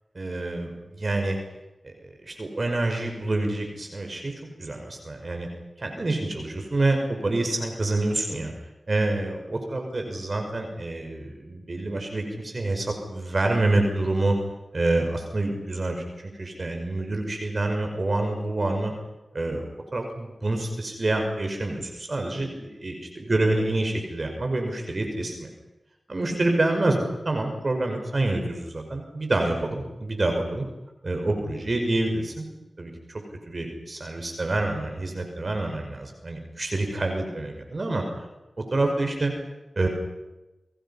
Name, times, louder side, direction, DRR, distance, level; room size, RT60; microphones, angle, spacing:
voice 1, 0.1-1.4 1.8-5.5 5.8-8.5 8.9-14.4 14.7-16.0 16.4-18.9 19.3-19.6 19.9-25.5 26.1-30.6 31.0-32.4 32.8-38.0 38.6-39.3 39.8-39.9, right 2 dB, 50° right, 4 dB, 5.4 m, -27 dB
29.5 x 23.5 x 5.7 m, 1.0 s
cardioid pair, 45°, 0 cm